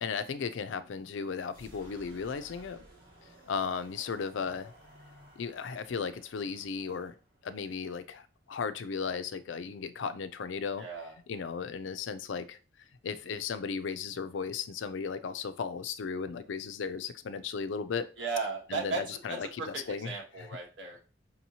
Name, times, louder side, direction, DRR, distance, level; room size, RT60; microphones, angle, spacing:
voice 1, 0.0-2.8 3.5-4.7 5.4-7.1 7.4-10.8 11.3-12.6 13.0-18.1 18.7-20.1 20.4-20.5, left 5 dB, 85° left, 0.4 m, -35 dB
sound 1, 1.4-9.1, equal, 55° right, 2.1 m, -57 dB
voice 2, 10.8-11.1 18.2-19.0 19.3-21.0, right 4 dB, 75° right, 1.2 m, -36 dB
5.3 x 2.8 x 2.8 m
head